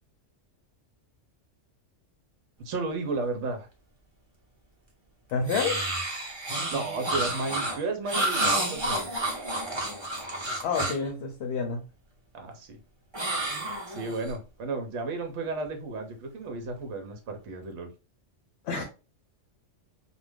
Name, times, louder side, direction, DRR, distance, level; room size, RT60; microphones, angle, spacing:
voice 1, 2.6-3.7 6.7-9.2 12.3-12.8 13.9-17.9, right 3 dB, 70° right, 0.9 m, -33 dB
voice 2, 5.3-5.8 10.6-11.8 18.6-18.8, left 5 dB, 65° left, 0.7 m, -28 dB
sound 1, 5.5-11.1 13.1-14.3, right 1 dB, 25° right, 0.7 m, -30 dB
2.4 x 2.2 x 3.3 m
omnidirectional pair, 1.3 m